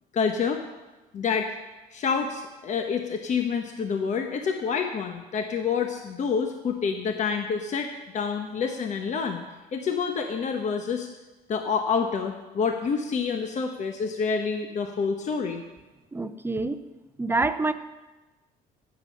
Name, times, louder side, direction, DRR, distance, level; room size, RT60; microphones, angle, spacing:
voice 1, 0.1-0.6 1.1-1.6 1.9-9.4 9.7-11.1 11.5-15.6, left 5 dB, 45° left, 5 dB, 1.0 m, -28 dB
voice 2, 16.1-16.8 17.2-17.7, right 3 dB, 15° right, 11 dB, 0.7 m, -26 dB
15.5 x 7.3 x 5.7 m, 1.1 s
cardioid pair, 110°, 17 cm